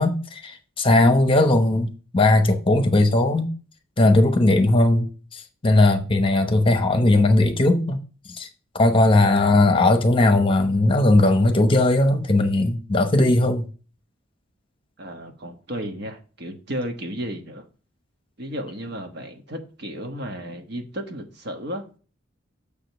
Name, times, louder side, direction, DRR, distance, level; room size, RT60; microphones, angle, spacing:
voice 1, 0.0-3.5 4.0-5.0 5.3-8.0 8.3-8.5 8.7-13.7, left 2 dB, 25° left, 0.9 m, -18 dB
voice 2, 9.2-9.9 15.0-17.6 18.4-21.9, equal, 55° right, 1.3 m, -34 dB
6.9 x 5.1 x 6.0 m
head